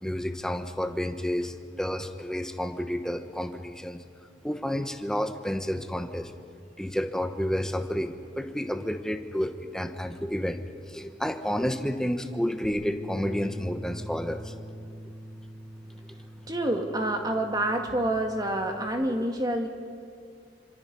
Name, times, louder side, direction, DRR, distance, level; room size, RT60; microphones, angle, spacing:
voice 1, 0.0-4.0 4.4-6.3 6.8-10.6 10.9-14.5, equal, 5° left, 7 dB, 1.2 m, -30 dB
Bass guitar, 12.6-18.9, equal, 80° right, 3.7 m, -43 dB
voice 2, 16.5-19.7, right 1 dB, 25° right, 3 dB, 2.2 m, -27 dB
27.0 x 26.0 x 5.5 m, 2.2 s
head